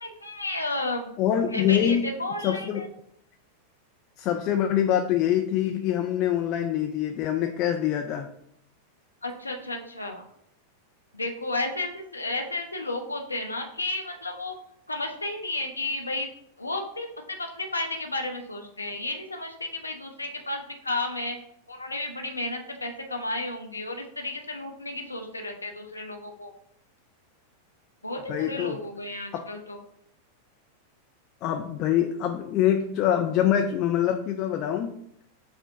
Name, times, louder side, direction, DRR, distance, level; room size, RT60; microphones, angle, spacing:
voice 1, 0.0-1.1 1.4-2.9 9.2-10.2 11.1-14.5 14.9-16.3 16.6-21.4 21.7-26.5 28.0-29.8, left 2 dB, 80° left, 3 dB, 0.7 m, -32 dB
voice 2, 1.2-2.1 2.4-2.8 4.2-8.3 28.3-28.8 29.3-29.4 31.4-35.0, left 10 dB, 40° left, 4 dB, 0.4 m, -25 dB
5.0 x 2.1 x 4.8 m, 0.72 s
figure-of-eight pair, 90°, 0 cm